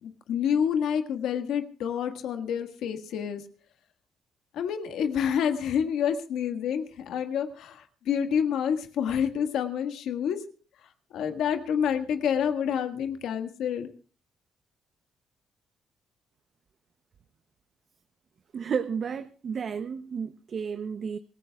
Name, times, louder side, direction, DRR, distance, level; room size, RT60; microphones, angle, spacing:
voice 1, 0.0-3.4 4.5-10.4 11.1-13.9, left 8 dB, 80° left, 7 dB, 1.7 m, -28 dB
voice 2, 18.5-21.2, right 6 dB, 50° right, 11 dB, 0.7 m, -32 dB
26.5 x 14.5 x 2.4 m, 0.40 s
cardioid pair, 90°, 0 cm